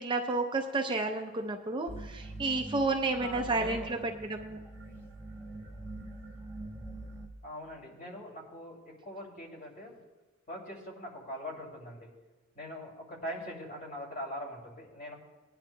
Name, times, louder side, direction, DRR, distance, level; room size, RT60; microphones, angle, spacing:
voice 1, 0.0-4.6, right 3 dB, 25° right, 3 dB, 0.6 m, -31 dB
sound 1, 1.9-7.3, right 2 dB, 15° left, 1.4 m, -44 dB
voice 2, 3.1-3.9 7.4-9.9 10.5-12.1 12.5-15.1, equal, 45° left, -2 dB, 2.7 m, -42 dB
19.5 x 10.0 x 2.2 m, 1.2 s
head